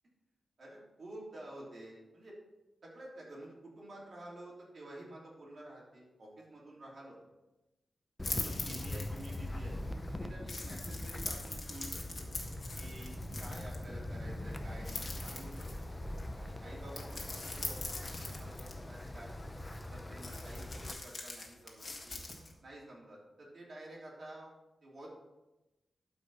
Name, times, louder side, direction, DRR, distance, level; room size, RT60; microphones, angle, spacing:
voice 1, 0.6-2.3 2.8-7.2 8.4-9.7 10.1-11.9 12.1-12.3 12.7-15.5 16.4-19.5 19.9-22.2 22.6-24.5 24.8-25.1, right 1 dB, 55° right, -5 dB, 3.4 m, -50 dB
sound 1, 8.2-9.5 10.5-13.8 14.8-15.9 17.0-18.7 20.2-22.5, left 3 dB, 40° left, 1.7 m, -43 dB
Wind, 8.2-20.9, left 1 dB, 15° left, 0.7 m, -42 dB
12.0 x 5.4 x 4.2 m, 1.0 s
wide cardioid pair, 105°, 0 cm